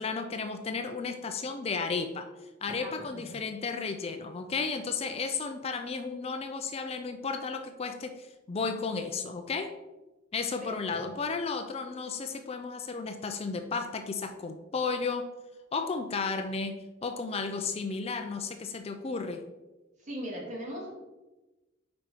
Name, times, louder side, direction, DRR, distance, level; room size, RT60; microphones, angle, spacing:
voice 1, 0.0-2.3 2.6-9.7 10.3-15.3 15.7-19.4, left 4 dB, 30° left, 7 dB, 0.4 m, -33 dB
voice 2, 2.7-3.4 10.6-11.1 20.0-20.9, equal, 40° right, -2 dB, 1.9 m, -40 dB
5.2 x 4.5 x 4.8 m, 1.1 s
head